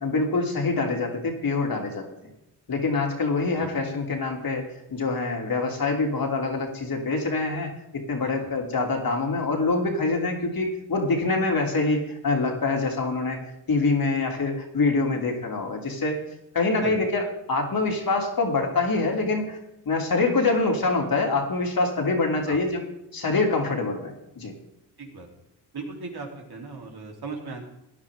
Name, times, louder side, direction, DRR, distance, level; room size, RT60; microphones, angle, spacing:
voice 1, 0.0-2.1 2.7-13.4 13.7-16.2 16.5-17.2 17.5-19.6 19.8-22.8 23.1-24.5, left 3 dB, 50° left, 1 dB, 3.2 m, -25 dB
voice 2, 25.7-27.7, right 4 dB, 60° right, 1 dB, 3.4 m, -37 dB
16.5 x 10.0 x 3.6 m, 0.88 s
cardioid pair, 60°, 43 cm